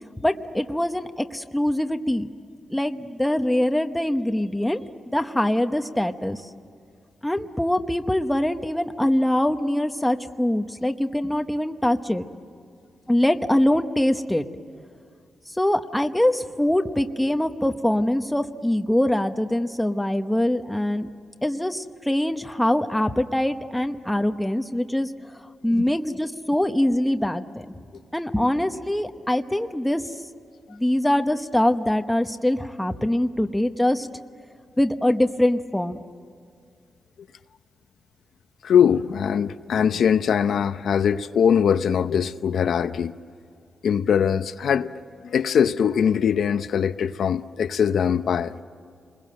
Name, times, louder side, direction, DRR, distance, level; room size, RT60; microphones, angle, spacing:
voice 1, 0.2-2.3 2.7-6.4 7.2-12.2 13.1-14.4 15.6-21.1 21.4-25.1 25.6-27.7 28.1-30.0 30.7-34.1 34.8-36.0, left 1 dB, 5° left, 1.0 m, -23 dB
voice 2, 38.6-43.1 43.8-44.9 45.2-48.5, left 8 dB, 75° left, 0.7 m, -21 dB
29.0 x 21.5 x 7.8 m
wide cardioid pair, 145°, 0 cm